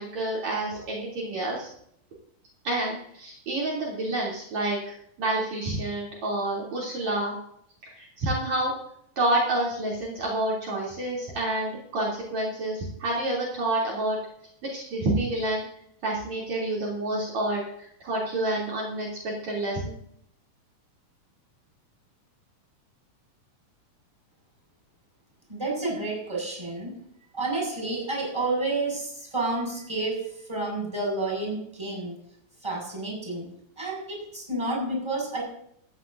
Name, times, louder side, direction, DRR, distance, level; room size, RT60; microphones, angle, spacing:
voice 1, 0.0-1.7 2.6-7.3 8.0-8.7 9.2-14.2 14.7-15.7 16.0-20.0, right 1 dB, 55° right, -5 dB, 4.4 m, -28 dB
voice 2, 25.5-27.0 27.3-32.1 32.6-33.5 33.8-35.4, right 2 dB, 5° right, -1 dB, 6.5 m, -30 dB
18.5 x 14.0 x 2.7 m, 0.69 s
omnidirectional pair, 3.9 m